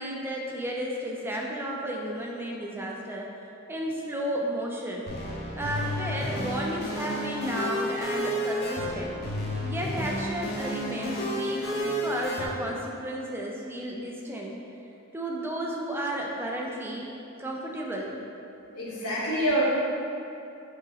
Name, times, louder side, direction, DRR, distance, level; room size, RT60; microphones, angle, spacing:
voice 1, 0.0-3.3 3.7-5.1 5.6-9.2 9.6-14.6 15.1-17.1 17.4-18.2, right 1 dB, 10° right, -2 dB, 0.4 m, -33 dB
sound 1, 5.1-12.5, equal, 45° left, 0.8 m, -31 dB
voice 2, 18.7-19.6, right 1 dB, 90° left, -7 dB, 1.2 m, -26 dB
6.2 x 2.9 x 2.8 m, 2.7 s
head